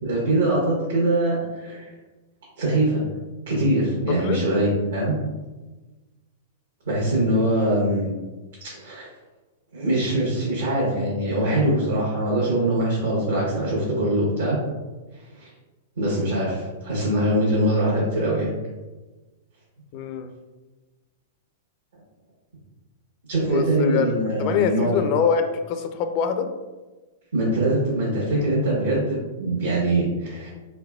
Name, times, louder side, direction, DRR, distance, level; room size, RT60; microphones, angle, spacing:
voice 1, 0.0-1.9 2.6-3.0 3.5-5.2 6.8-8.1 8.8-9.1 9.7-14.6 15.1-15.5 16.0-18.5 23.3-25.0 27.3-30.5, right 1 dB, 75° right, -8 dB, 1.1 m, -23 dB
voice 2, 4.1-4.4 19.9-20.3 23.5-24.1 24.4-26.5, left 7 dB, 45° left, 8 dB, 0.3 m, -24 dB
3.3 x 3.3 x 2.3 m, 1.2 s
hypercardioid pair, 115°, 0 cm